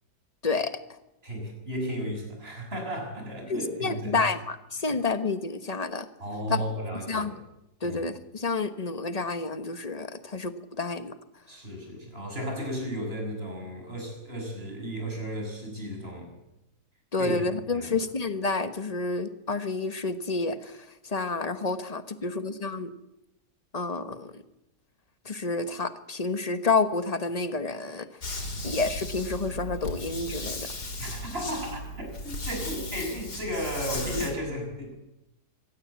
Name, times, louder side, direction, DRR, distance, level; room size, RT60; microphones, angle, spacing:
voice 1, 0.4-0.8 3.5-6.1 6.5-6.7 7.1-7.3 7.8-11.1 17.1-22.9 23.7-24.4 25.2-28.1 28.6-30.7, left 3 dB, 25° left, 11 dB, 1.2 m, -29 dB
voice 2, 1.2-4.2 6.2-7.3 7.8-8.0 11.5-16.3 17.2-17.3 17.7-18.0 28.4-28.7 31.0-34.9, equal, 35° right, 2 dB, 6.6 m, -34 dB
sound 1, 28.2-34.3, left 1 dB, 80° left, 4.0 m, -36 dB
24.0 x 17.0 x 8.3 m, 0.90 s
omnidirectional pair, 1.7 m